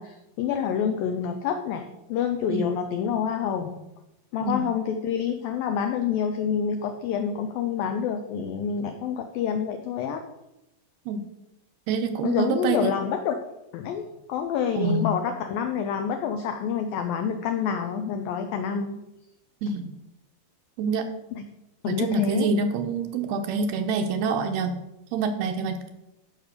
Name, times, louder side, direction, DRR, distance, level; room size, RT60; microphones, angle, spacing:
voice 1, 0.0-3.8 4.3-10.2 12.2-13.3 13.7-14.0 14.3-19.0 21.3-21.4 21.8-22.5, left 7 dB, 90° left, 6 dB, 2.0 m, -27 dB
voice 2, 11.9-12.9 14.8-15.1 19.6-19.9 20.8-21.1 21.9-24.8 25.1-25.9, right 4 dB, 75° right, 6 dB, 2.6 m, -26 dB
13.5 x 5.3 x 6.6 m, 0.91 s
omnidirectional pair, 5.1 m